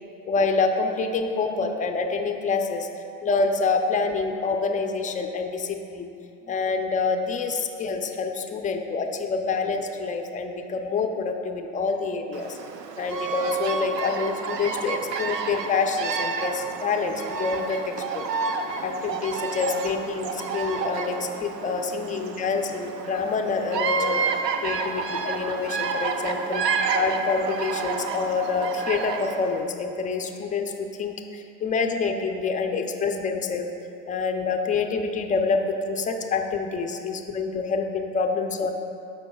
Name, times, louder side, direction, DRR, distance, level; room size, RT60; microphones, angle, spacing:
voice 1, 0.3-2.9 3.2-6.1 6.5-12.6 13.0-18.2 18.8-33.7 34.1-38.7, left 4 dB, 15° left, 4 dB, 0.5 m, -27 dB
Bird vocalization bird call bird song, 12.3-29.6, right 5 dB, 90° right, 0.6 m, -30 dB
13.5 x 5.1 x 2.3 m, 2.6 s
hypercardioid pair, 85°, 47 cm